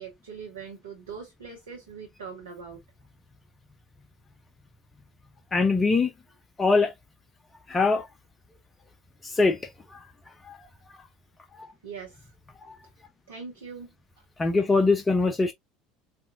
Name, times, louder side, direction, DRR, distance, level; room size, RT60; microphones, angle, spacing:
voice 1, 0.0-2.8 11.8-12.3 13.3-13.9, right 6 dB, 70° right, 1.0 m, -41 dB
voice 2, 5.5-6.1 6.6-6.9 7.7-8.1 9.2-9.6 9.9-10.0 10.4-10.6 11.5-11.7 14.4-15.5, left 3 dB, 20° left, 0.6 m, -22 dB
4.3 x 2.6 x 2.6 m
figure-of-eight pair, 70°, 0 cm